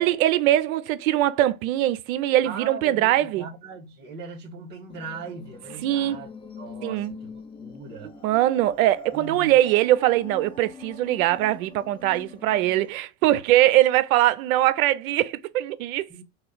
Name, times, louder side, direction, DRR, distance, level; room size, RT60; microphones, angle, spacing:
voice 1, 0.0-3.4 5.8-6.2 6.8-7.1 8.2-16.2, right 14 dB, 80° right, 0.6 m, -22 dB
voice 2, 2.4-6.3 6.6-8.1 9.1-9.6 16.1-16.2, right 4 dB, 25° right, 1.4 m, -39 dB
sound 1, 4.9-12.9, left 4 dB, 15° left, 0.5 m, -43 dB
3.2 x 2.5 x 3.8 m
supercardioid pair, 125°, 41 cm